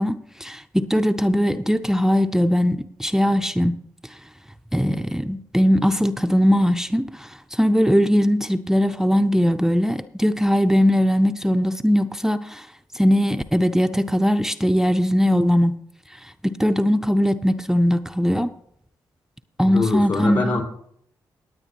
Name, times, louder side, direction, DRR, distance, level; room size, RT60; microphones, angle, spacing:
voice 1, 0.0-3.8 4.7-12.7 12.9-15.8 16.4-18.5 19.6-20.6, equal, 5° right, 9 dB, 0.6 m, -20 dB
voice 2, 19.6-20.6, left 3 dB, 75° left, -5 dB, 4.5 m, -24 dB
17.5 x 9.1 x 3.0 m, 0.70 s
supercardioid pair, 45°, 9 cm